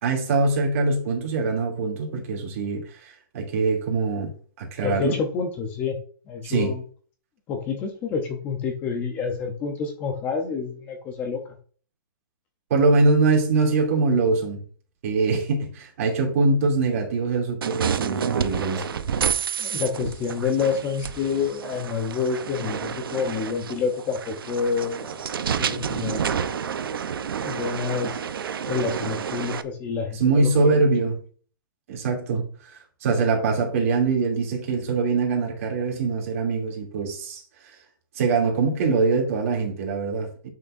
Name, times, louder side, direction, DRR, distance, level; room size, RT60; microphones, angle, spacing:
voice 1, 0.0-4.3 4.6-5.1 6.4-6.7 12.7-14.6 15.0-18.8 30.1-31.2 31.9-37.4 38.1-40.5, right 3 dB, 40° right, 2.8 m, -23 dB
voice 2, 4.8-6.0 6.3-6.8 7.5-11.4 19.6-25.2 25.6-26.4 27.4-28.3 28.7-30.8, left 5 dB, 15° left, 0.7 m, -28 dB
sound 1, 17.6-29.6, right 7 dB, 80° right, 0.8 m, -29 dB
10.5 x 6.6 x 2.6 m
hypercardioid pair, 175°, 12 cm